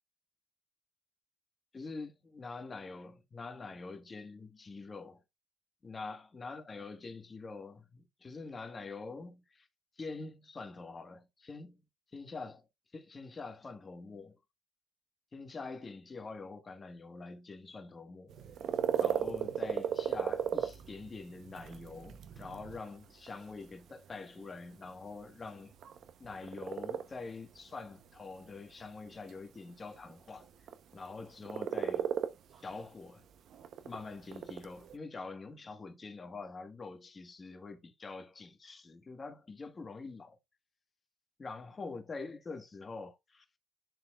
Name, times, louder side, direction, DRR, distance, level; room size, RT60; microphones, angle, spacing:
voice 1, 1.7-5.2 5.8-9.7 10.0-11.8 12.1-12.6 12.9-14.4 15.3-18.3 19.0-25.7 26.2-30.5 30.9-32.1 32.6-33.3 33.8-40.4 41.4-43.6, left 3 dB, 35° left, 1.4 m, -45 dB
sound 1, 18.3-35.0, right 9 dB, 70° right, 0.7 m, -37 dB
10.5 x 4.2 x 2.3 m
cardioid pair, 90°, 0 cm